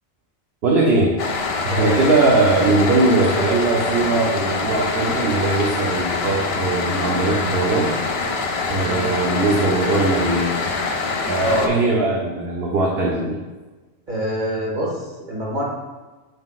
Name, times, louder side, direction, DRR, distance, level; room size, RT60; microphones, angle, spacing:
voice 1, 0.6-1.2 1.6-7.9 8.7-10.6 11.3-13.4, right 3 dB, 60° right, -3 dB, 1.0 m, -20 dB
sound 1, 1.2-11.7, left 4 dB, 60° left, 0.9 m, -24 dB
voice 2, 1.6-2.0 8.8-9.3 11.4-11.7 14.1-15.6, equal, 40° right, -5 dB, 1.9 m, -25 dB
7.1 x 5.8 x 2.4 m, 1.2 s
omnidirectional pair, 1.2 m